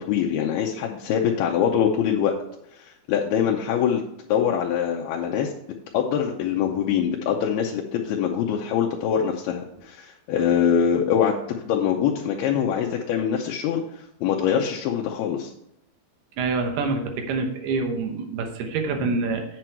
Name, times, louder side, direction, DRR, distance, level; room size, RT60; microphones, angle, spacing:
voice 1, 0.0-2.3 2.7-4.0 4.3-5.5 5.9-15.5 19.0-19.1, left 8 dB, 80° left, 0 dB, 2.6 m, -24 dB
voice 2, 16.4-19.4, right 4 dB, 80° right, 4 dB, 3.0 m, -26 dB
7.8 x 7.7 x 4.5 m, 0.78 s
omnidirectional pair, 4.6 m